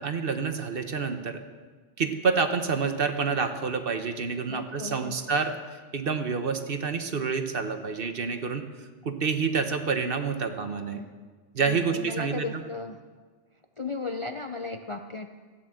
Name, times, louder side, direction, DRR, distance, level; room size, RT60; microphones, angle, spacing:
voice 1, 0.0-1.4 2.0-8.6 9.0-11.0 11.5-12.6, right 5 dB, 55° right, 7 dB, 1.2 m, -28 dB
voice 2, 4.4-5.2 10.7-11.1 11.6-13.0 13.8-15.3, left 3 dB, 35° left, 5 dB, 0.5 m, -36 dB
14.5 x 9.6 x 7.7 m, 1.4 s
omnidirectional pair, 1.2 m